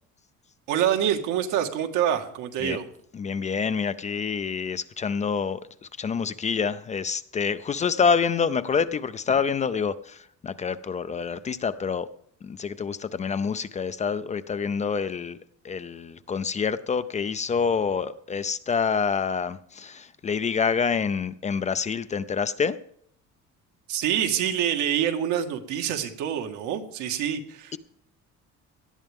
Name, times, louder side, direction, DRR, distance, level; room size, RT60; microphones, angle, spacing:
voice 1, 0.7-2.9 23.9-27.8, right 10 dB, 80° right, 5 dB, 1.8 m, -26 dB
voice 2, 3.1-12.1 12.4-15.4 15.6-22.8 27.7-27.8, left 6 dB, 25° left, 13 dB, 0.4 m, -27 dB
18.0 x 13.0 x 3.6 m, 0.65 s
cardioid pair, 150°, 30 cm